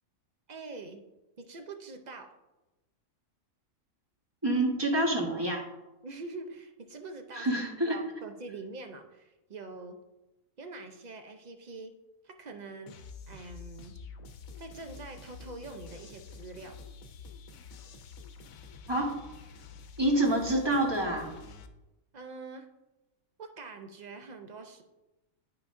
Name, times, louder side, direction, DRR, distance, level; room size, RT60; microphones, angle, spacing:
voice 1, 0.5-1.0 1.4-2.3 6.0-10.0 10.6-11.9 12.2-13.0 13.3-14.0 14.6-16.8 22.1-22.7 23.4-24.8, right 3 dB, 50° right, 6 dB, 0.5 m, -44 dB
voice 2, 4.4-5.6 7.3-8.0 18.9-19.2 20.0-21.3, right 1 dB, 20° right, 0 dB, 1.1 m, -27 dB
sound 1, 12.9-21.7, left 4 dB, 80° left, 1.1 m, -48 dB
10.0 x 5.9 x 2.6 m, 1.0 s
omnidirectional pair, 1.4 m